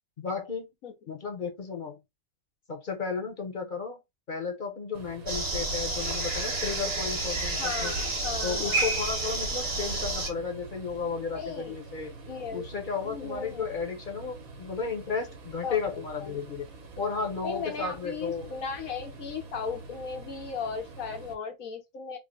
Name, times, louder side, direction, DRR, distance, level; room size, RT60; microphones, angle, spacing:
voice 1, 0.2-0.7 1.1-2.0 2.7-4.0 4.3-7.9 8.4-12.2 12.5-16.7 17.0-18.5, left 5 dB, 45° left, 0.8 m, -34 dB
sound 1, 4.9-21.3, right 3 dB, 90° right, 1.4 m, -46 dB
sound 2, 5.3-10.3, right 2 dB, 50° right, 1.5 m, -30 dB
voice 2, 7.6-8.9 11.3-11.8 12.3-12.7 13.0-13.7 15.6-16.4 17.4-22.2, left 5 dB, 90° left, 1.5 m, -36 dB
3.6 x 2.1 x 3.5 m
omnidirectional pair, 1.4 m